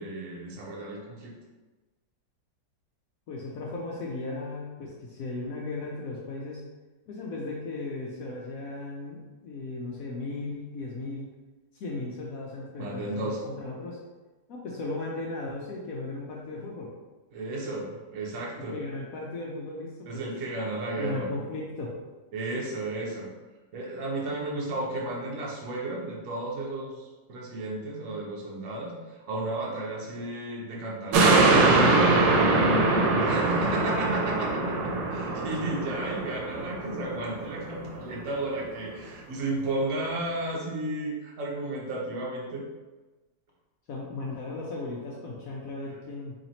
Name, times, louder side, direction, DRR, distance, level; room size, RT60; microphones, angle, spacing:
voice 1, 0.0-1.3 12.8-13.4 17.3-18.7 20.0-21.3 22.3-23.3 23.7-31.4 32.4-42.6, right 2 dB, 55° right, -2 dB, 1.0 m, -33 dB
voice 2, 3.3-6.7 7.1-11.3 11.7-14.0 14.5-16.9 18.6-20.2 21.0-21.9 32.7-33.2 43.9-46.3, left 2 dB, 70° left, -3 dB, 0.8 m, -36 dB
sound 1, 31.1-37.8 38.2-38.3, right 3 dB, 80° right, 1.3 m, -23 dB
3.2 x 2.9 x 4.0 m, 1.2 s
omnidirectional pair, 2.0 m